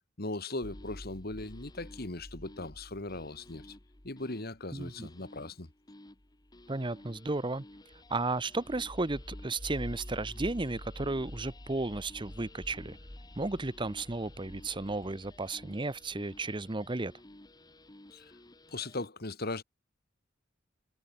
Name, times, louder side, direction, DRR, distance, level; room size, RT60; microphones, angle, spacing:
voice 1, 0.2-3.7 4.0-5.7 18.1-18.3 18.7-19.6, left 2 dB, 55° left, 2.3 m, -38 dB
sound 1, 0.6-19.1, left 1 dB, 20° left, 1.4 m, -49 dB
voice 2, 4.7-5.1 6.7-7.6 8.1-13.0 13.4-17.1, right 2 dB, 25° right, 0.9 m, -34 dB
head